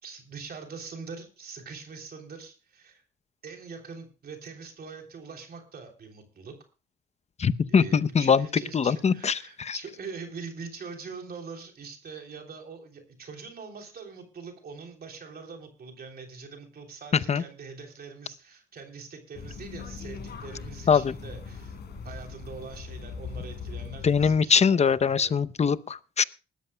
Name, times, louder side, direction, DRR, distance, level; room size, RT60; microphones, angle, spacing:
voice 1, 0.0-3.0 3.4-6.6 7.7-21.8 22.0-25.4, right 5 dB, 50° right, 3 dB, 3.3 m, -43 dB
voice 2, 7.4-8.5 8.7-9.8 17.3-17.4 20.9-21.1 24.0-26.2, left 6 dB, 35° left, 16 dB, 0.7 m, -22 dB
sound 1, 19.3-24.4, left 5 dB, 55° left, 3.6 m, -40 dB
20.5 x 13.5 x 2.2 m, 0.32 s
cardioid pair, 90°, 20 cm